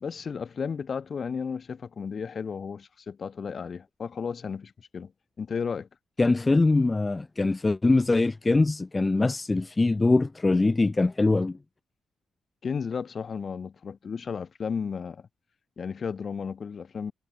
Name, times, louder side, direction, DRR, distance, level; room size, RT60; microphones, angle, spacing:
voice 1, 0.0-5.1 5.4-5.9 12.6-15.3 15.8-17.1, left 6 dB, 45° left, 1.5 m, -33 dB
voice 2, 6.2-11.6, left 3 dB, 20° left, 0.7 m, -23 dB
cardioid pair, 90°, 0 cm